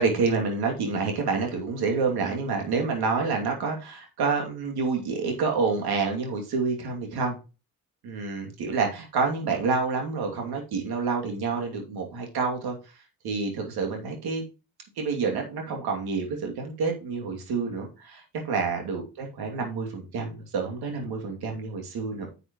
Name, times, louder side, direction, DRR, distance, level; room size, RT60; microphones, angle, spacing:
voice 1, 0.0-7.4 8.0-12.8 13.2-14.4 15.0-22.3, right 4 dB, 65° right, 2 dB, 2.8 m, -28 dB
9.5 x 6.8 x 3.1 m, 0.30 s
hypercardioid pair, 45°, 40 cm